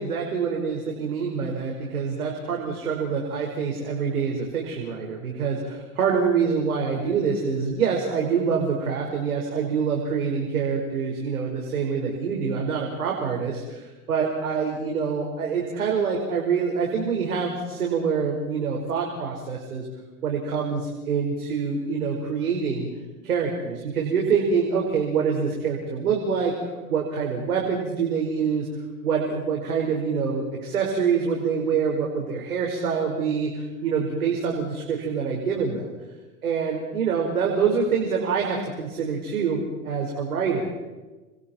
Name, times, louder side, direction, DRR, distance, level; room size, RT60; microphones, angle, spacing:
voice 1, 0.0-19.9 20.2-22.9 23.2-28.7 29.0-35.9 36.4-40.7, right 6 dB, 75° right, 0 dB, 5.2 m, -26 dB
29.0 x 26.5 x 4.5 m, 1.2 s
hypercardioid pair, 115°, 44 cm